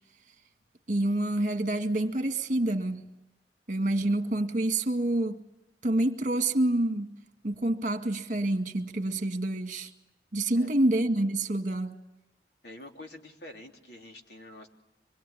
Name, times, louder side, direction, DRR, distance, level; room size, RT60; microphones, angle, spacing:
voice 1, 0.9-3.0 3.7-5.4 5.8-7.1 7.4-9.9 10.3-12.0, right 1 dB, 45° right, 2.0 m, -27 dB
voice 2, 12.6-14.7, left 1 dB, 70° left, 3.3 m, -47 dB
25.5 x 23.0 x 10.0 m
head